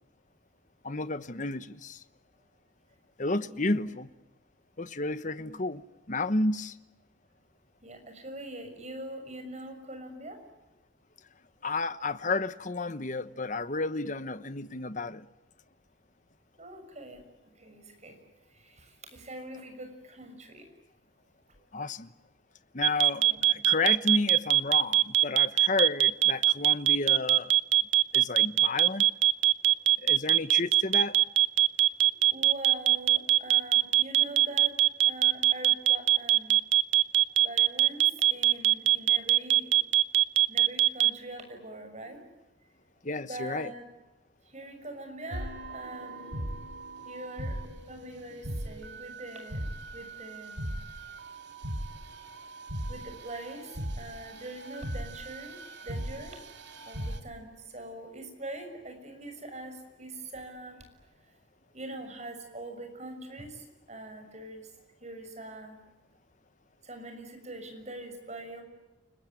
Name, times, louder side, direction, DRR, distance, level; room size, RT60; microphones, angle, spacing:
voice 1, 0.8-2.0 3.2-4.1 4.8-5.8 6.1-6.8 11.6-15.3 21.7-22.1 22.7-27.5 28.1-29.1 30.0-31.2 43.0-43.7, left 3 dB, 40° left, 1.1 m, -31 dB
voice 2, 3.4-4.0 5.4-5.6 7.8-10.4 16.6-20.7 23.1-23.6 32.3-34.8 35.0-36.6 37.4-39.7 40.5-42.2 43.3-43.9 44.4-46.5 47.0-47.6 47.9-49.7 49.9-50.7 52.9-56.4 56.9-60.9 61.2-61.3 61.7-64.7 65.0-65.8 66.8-68.6, right 1 dB, 35° right, 6.5 m, -43 dB
sound 1, 22.8-41.1, right 14 dB, 80° right, 0.9 m, -21 dB
sound 2, 45.3-57.2, right 1 dB, 60° right, 2.6 m, -39 dB
30.0 x 20.0 x 9.2 m
head